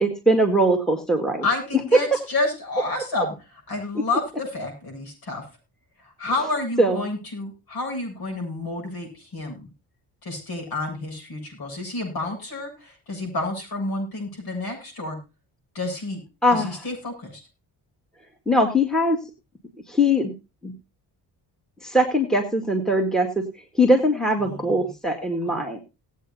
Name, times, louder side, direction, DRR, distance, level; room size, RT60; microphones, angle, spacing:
voice 1, 0.0-1.4 6.8-7.0 16.4-16.8 18.5-19.2 19.9-20.3 20.6-20.7 21.8-23.4 23.8-25.8, equal, ahead, 4 dB, 1.9 m, -21 dB
voice 2, 1.4-5.4 6.0-9.7 10.2-15.2 15.7-16.2 16.5-17.4 24.4-24.9 25.4-25.5, left 2 dB, 60° left, 2 dB, 7.9 m, -30 dB
19.5 x 8.2 x 2.7 m, 0.29 s
cardioid pair, 90°, 41 cm